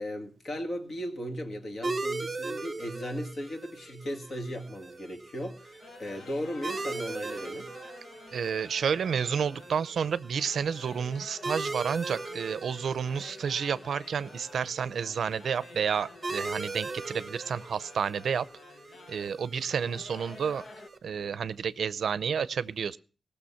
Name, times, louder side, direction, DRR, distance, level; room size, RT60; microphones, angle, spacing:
voice 1, 0.0-7.7, equal, 45° left, 2.1 m, -36 dB
sound 1, 1.8-21.0, right 3 dB, 25° right, 0.9 m, -40 dB
sound 2, 5.8-20.9, left 4 dB, 65° left, 1.0 m, -51 dB
voice 2, 8.3-18.5 19.1-20.6 21.0-23.0, right 7 dB, 75° right, 0.6 m, -30 dB
19.0 x 6.8 x 5.7 m
wide cardioid pair, 175°, 0 cm